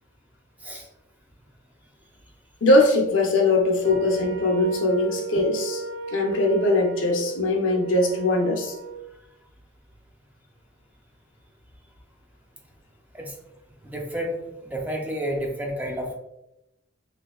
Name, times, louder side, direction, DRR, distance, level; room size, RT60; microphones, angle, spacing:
voice 1, 2.6-5.8 6.1-8.8, left 2 dB, 85° left, 2 dB, 0.7 m, -21 dB
Wind instrument woodwind instrument, 3.8-9.0, right 5 dB, 90° right, 0.3 m, -36 dB
voice 2, 13.8-14.4 14.7-16.2, equal, 10° right, 0 dB, 0.4 m, -30 dB
3.3 x 3.2 x 2.3 m, 0.87 s
head